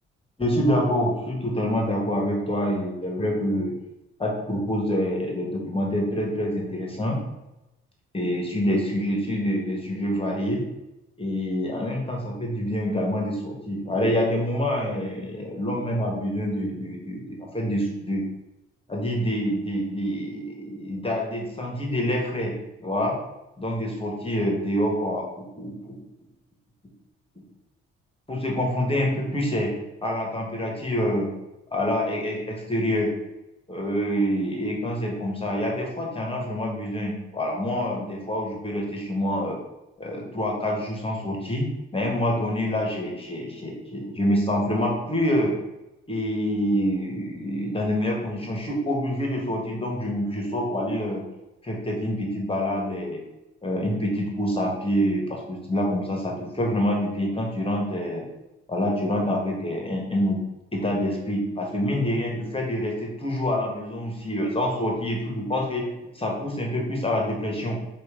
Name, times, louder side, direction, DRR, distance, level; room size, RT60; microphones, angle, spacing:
voice 1, 0.4-3.7 4.2-7.2 8.1-10.6 11.2-18.2 18.9-22.5 22.8-23.2 23.6-26.0 28.3-29.7 30.0-31.3 31.7-33.1 33.7-39.6 40.0-41.7 41.9-45.5 46.1-51.2 51.6-53.2 53.6-58.2 58.7-60.4 60.7-65.9 66.1-67.8, equal, 20° left, -1 dB, 1.4 m, -26 dB
4.9 x 2.7 x 3.7 m, 0.96 s
supercardioid pair, 55°, 29 cm